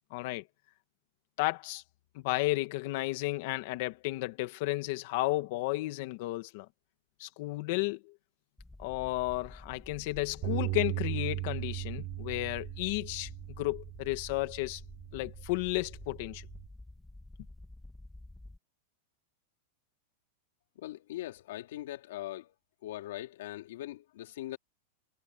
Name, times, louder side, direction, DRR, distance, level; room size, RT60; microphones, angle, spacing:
voice 1, 0.1-0.4 1.4-1.8 2.1-6.7 7.2-8.1 8.8-13.3 13.6-14.8 15.1-16.5, left 20 dB, 50° left, 1.7 m, -33 dB
sound 1, 8.6-18.6, left 2 dB, 5° left, 1.7 m, -50 dB
Bass guitar, 10.4-16.7, right 22 dB, 40° right, 3.3 m, -38 dB
voice 2, 20.8-22.5 22.8-24.6, left 14 dB, 65° left, 3.7 m, -41 dB
supercardioid pair, 165°, 0 cm